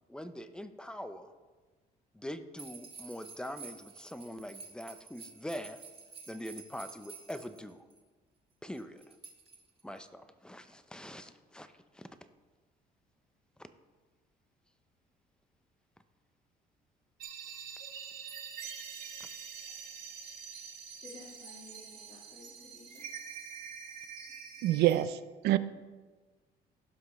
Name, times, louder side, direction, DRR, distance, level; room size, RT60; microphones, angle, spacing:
voice 1, 0.1-1.3 2.1-5.8 6.3-7.8 8.6-9.1 9.8-12.1, equal, 5° left, 10 dB, 0.6 m, -43 dB
sound 1, 2.6-8.0 8.8-10.0, right 4 dB, 35° right, 1.9 m, -50 dB
sound 2, 17.2-25.0, right 7 dB, 60° right, 2.4 m, -45 dB
voice 2, 21.0-23.0, left 3 dB, 45° left, -7 dB, 2.6 m, -53 dB
voice 3, 24.6-25.2 25.4-25.6, right 14 dB, 80° right, 14 dB, 0.5 m, -25 dB
16.5 x 5.9 x 3.2 m, 1.3 s
cardioid pair, 110°, 17 cm